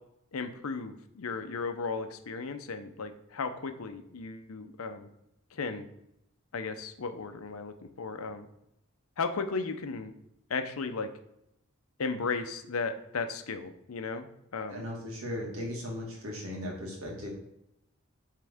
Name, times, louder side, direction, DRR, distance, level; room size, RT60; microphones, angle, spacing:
voice 1, 0.3-5.1 5.5-5.9 6.5-8.5 9.2-10.1 10.5-11.1 12.0-14.3 14.5-14.8, left 4 dB, 90° left, 8 dB, 0.7 m, -35 dB
voice 2, 14.7-17.3, left 1 dB, 90° right, -1 dB, 1.9 m, -37 dB
7.6 x 3.7 x 3.6 m, 0.82 s
head